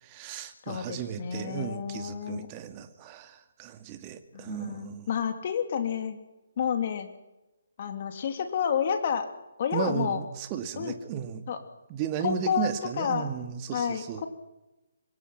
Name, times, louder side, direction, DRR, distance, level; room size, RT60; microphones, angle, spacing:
voice 1, 0.0-5.1 9.7-11.4 11.9-14.2, right 9 dB, 25° right, 8 dB, 2.3 m, -35 dB
voice 2, 0.7-2.5 4.3-6.2 6.6-7.1 7.8-9.3 9.6-10.2 10.8-10.9 11.5-11.6 12.2-12.7 13.0-13.3 13.7-14.3, left 7 dB, 45° left, 7 dB, 3.1 m, -30 dB
25.0 x 22.5 x 6.1 m, 0.99 s
figure-of-eight pair, 140°, 0 cm